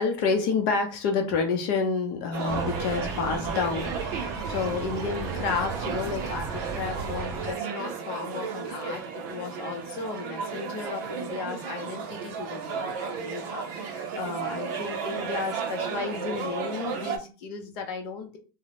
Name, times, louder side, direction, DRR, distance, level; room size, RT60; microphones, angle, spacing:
voice 1, 0.0-9.0 9.3-18.4, left 5 dB, 55° left, 4 dB, 0.6 m, -31 dB
sound 1, 2.3-17.2, right 6 dB, 60° right, 0.5 m, -34 dB
sound 2, 2.5-7.5, right 4 dB, 25° right, 0.7 m, -35 dB
2.2 x 2.0 x 2.8 m, 0.35 s
supercardioid pair, 125°, 13 cm